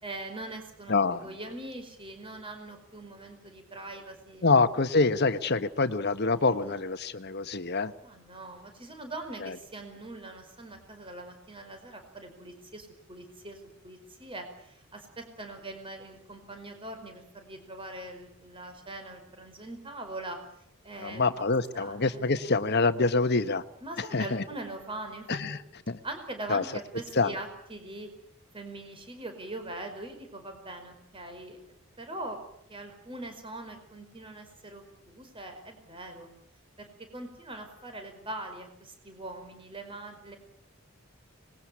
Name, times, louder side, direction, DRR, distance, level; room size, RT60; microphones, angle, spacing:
voice 1, 0.0-0.9 1.2-4.5 4.9-5.2 6.3-6.8 8.0-20.4 20.8-21.5 21.7-22.6 23.8-25.3 25.5-25.6 26.0-28.1 28.5-31.6 32.0-32.4 32.7-36.3 36.8-36.9 37.1-40.4, right 2 dB, 25° right, 6 dB, 5.0 m, -42 dB
voice 2, 0.9-1.3 4.4-7.9 9.4-9.5 21.0-23.6 24.0-24.4 25.3-25.6 25.9-26.0 26.5-26.6 27.2-27.3, left 3 dB, 50° left, 11 dB, 1.3 m, -26 dB
26.0 x 21.5 x 8.5 m, 0.70 s
head